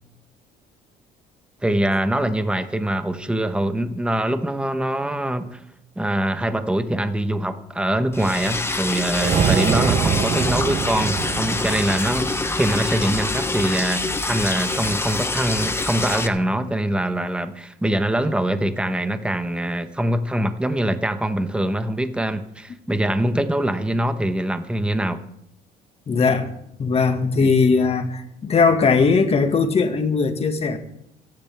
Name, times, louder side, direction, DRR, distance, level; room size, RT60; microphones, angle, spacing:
voice 1, 1.6-5.6 6.0-25.2, right 1 dB, 5° right, 1.2 m, -23 dB
Liquid, 8.1-16.3, left 3 dB, 15° left, 1.1 m, -25 dB
sound 1, 9.1-13.5, right 7 dB, 45° right, 0.8 m, -24 dB
voice 2, 26.1-26.5 26.8-30.8, left 4 dB, 35° left, 1.9 m, -19 dB
27.0 x 10.5 x 3.6 m
cardioid pair, 110°, 17 cm